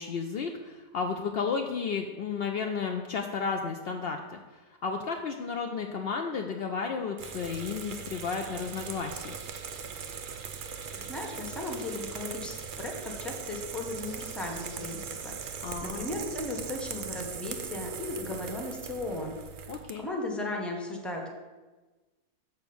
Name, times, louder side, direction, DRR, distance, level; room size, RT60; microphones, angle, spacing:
voice 1, 0.0-9.4 15.6-16.1 19.7-20.1, left 5 dB, 85° left, 3 dB, 0.5 m, -33 dB
sound 1, 7.2-19.9, right 6 dB, 85° right, 0.4 m, -40 dB
voice 2, 11.0-21.3, left 2 dB, ahead, 1 dB, 0.8 m, -36 dB
6.8 x 4.6 x 6.9 m, 1.2 s
omnidirectional pair, 1.7 m